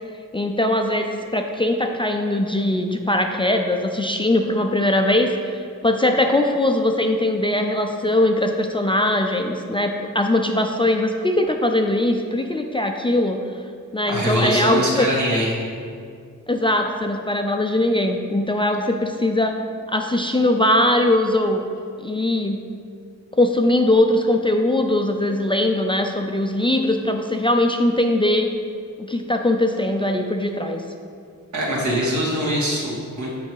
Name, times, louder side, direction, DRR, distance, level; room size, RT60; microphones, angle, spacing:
voice 1, 0.3-13.4 13.9-15.1 16.5-19.6 19.9-21.6 22.0-22.7 23.4-28.5 29.0-30.8, left 1 dB, 15° left, 3 dB, 0.4 m, -21 dB
voice 2, 14.1-15.5 31.5-33.3, equal, 65° right, -5 dB, 2.0 m, -22 dB
6.5 x 5.8 x 4.7 m, 2.2 s
wide cardioid pair, 85°, 31 cm